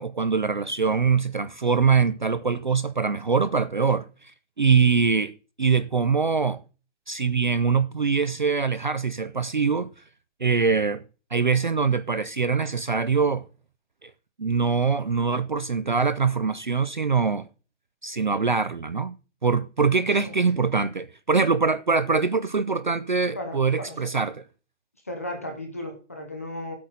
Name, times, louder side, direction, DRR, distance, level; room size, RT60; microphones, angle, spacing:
voice 1, 0.0-4.1 4.6-5.3 5.6-6.6 7.1-9.9 10.4-11.0 11.3-13.4 14.0-14.1 14.4-17.5 18.0-19.2 19.4-24.4, right 5 dB, 40° right, 0.5 m, -23 dB
voice 2, 23.3-24.1 25.0-26.7, left 1 dB, 10° left, 0.7 m, -35 dB
15.0 x 8.5 x 3.9 m
hypercardioid pair, 180°, 37 cm